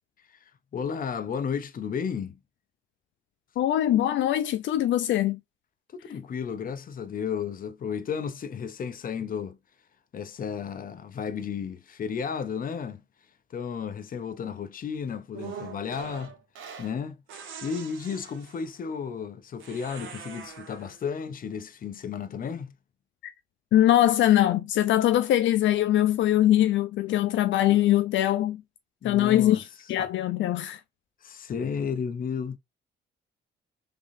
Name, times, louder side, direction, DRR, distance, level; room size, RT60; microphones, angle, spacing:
voice 1, 0.7-2.4 5.9-9.6 10.1-13.0 13.5-16.3 16.8-17.2 17.6-22.7 27.7-27.8 29.0-29.7 30.0-30.1 31.2-32.6, left 6 dB, 45° left, 0.7 m, -33 dB
voice 2, 3.6-5.4 23.7-28.6 29.0-30.8, left 13 dB, 70° left, 0.4 m, -22 dB
sound 1, 15.3-17.0 17.3-18.8 19.6-21.0, right 7 dB, 80° right, 1.3 m, -43 dB
3.7 x 3.5 x 2.5 m
cardioid pair, 90°, 20 cm